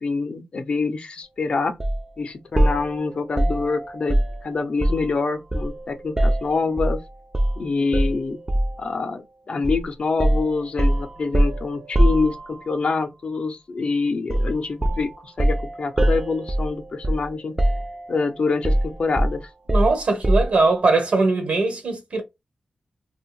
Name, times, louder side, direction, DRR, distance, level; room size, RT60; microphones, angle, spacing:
voice 1, 0.0-1.7 2.2-7.0 7.6-8.4 8.8-17.5 18.1-19.5, left 4 dB, 55° left, 0.5 m, -26 dB
sound 1, 1.8-2.0 2.6-5.2 5.5-7.0 7.3-7.6 7.9-8.8 9.6-9.8 10.2-12.8 14.3-14.6 14.8-17.3 17.6-18.2 18.6-20.6, right 1 dB, 25° right, 0.4 m, -22 dB
voice 2, 19.7-22.2, right 3 dB, 70° right, 1.1 m, -20 dB
2.4 x 2.2 x 3.1 m
wide cardioid pair, 90°, 2 cm